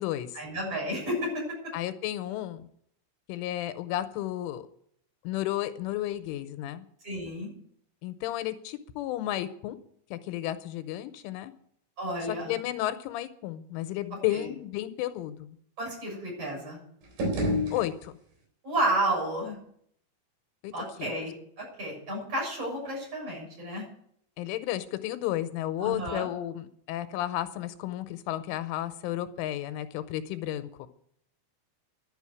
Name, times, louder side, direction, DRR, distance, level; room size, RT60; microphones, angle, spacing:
voice 1, 0.3-1.4 7.0-7.5 12.0-12.6 14.3-14.5 15.8-16.8 18.6-19.6 20.7-23.8 25.8-26.3, right 1 dB, 30° right, -3 dB, 7.9 m, -31 dB
voice 2, 1.7-2.7 3.3-4.7 5.2-6.9 8.0-9.8 10.1-11.5 12.3-15.6 17.7-18.2 20.6-20.7 21.0-21.1 24.4-30.7, left 13 dB, 85° left, 11 dB, 3.3 m, -33 dB
sound 1, 17.0-18.5, left 1 dB, 60° right, 5.9 m, -30 dB
12.0 x 8.0 x 9.6 m, 0.68 s
omnidirectional pair, 5.5 m